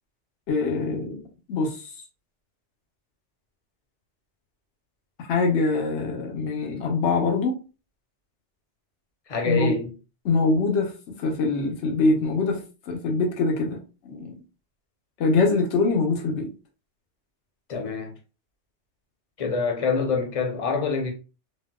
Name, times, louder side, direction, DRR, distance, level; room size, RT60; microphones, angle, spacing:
voice 1, 0.5-1.9 5.2-7.6 9.4-9.7 10.2-14.3 15.2-16.5, left 3 dB, 80° left, 1.0 m, -24 dB
voice 2, 9.3-9.9 17.7-18.1 19.4-21.1, left 4 dB, 40° left, 0.7 m, -26 dB
4.1 x 2.1 x 2.2 m
omnidirectional pair, 1.2 m